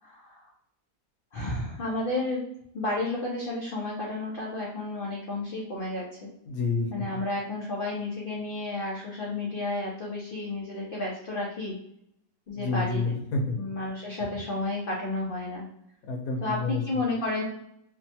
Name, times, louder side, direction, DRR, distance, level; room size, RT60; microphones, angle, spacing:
voice 1, 0.0-0.5 1.3-2.4 2.7-6.3 6.9-11.7 12.5-13.1 13.6-15.6 16.4-17.4, left 2 dB, 85° left, -3 dB, 0.4 m, -32 dB
voice 2, 6.5-7.2 12.6-13.6 16.1-17.0, left 3 dB, 65° left, 1 dB, 1.1 m, -29 dB
3.0 x 2.1 x 2.8 m, 0.76 s
omnidirectional pair, 1.8 m